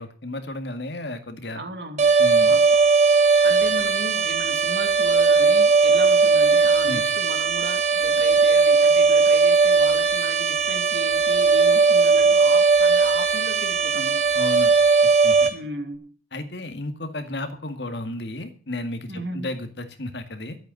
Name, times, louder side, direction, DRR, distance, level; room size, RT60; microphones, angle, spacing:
voice 1, 0.0-1.6 2.2-2.6 6.9-7.0 14.3-14.7 15.2-15.5 16.3-20.6, left 1 dB, 70° left, 8 dB, 2.0 m, -33 dB
voice 2, 1.5-2.1 2.4-2.8 3.4-14.2 15.5-16.1 19.1-19.5, right 2 dB, 65° right, 6 dB, 2.7 m, -36 dB
sound 1, 2.0-15.5, right 4 dB, 40° right, 2.0 m, -18 dB
12.5 x 8.4 x 7.8 m, 0.41 s
head